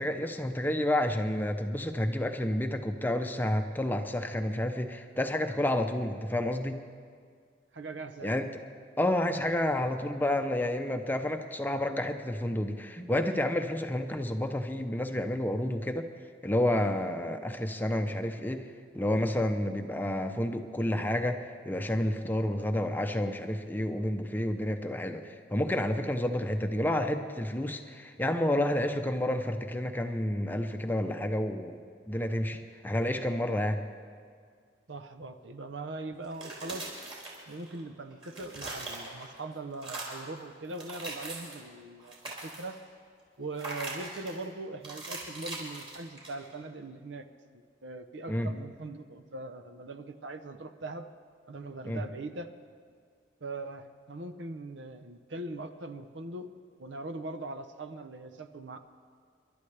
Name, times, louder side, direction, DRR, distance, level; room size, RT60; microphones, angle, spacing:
voice 1, 0.0-6.8 8.2-8.6 9.0-16.1 16.4-18.7 18.9-31.8 32.1-33.8 48.3-48.5 51.8-52.0, left 1 dB, 10° left, 6 dB, 0.6 m, -30 dB
voice 2, 7.7-8.4 34.9-36.9 37.5-42.8 43.4-47.3 47.8-51.1 51.5-52.5 53.4-56.5 56.8-58.8, right 2 dB, 75° right, 9 dB, 0.8 m, -41 dB
sound 1, 36.2-37.8 38.1-39.4 39.7-40.3 40.7-41.7 42.0-42.8 43.6-44.4 44.8-46.5, right 2 dB, 30° right, 3.9 m, -41 dB
28.5 x 12.0 x 3.4 m, 2.1 s
head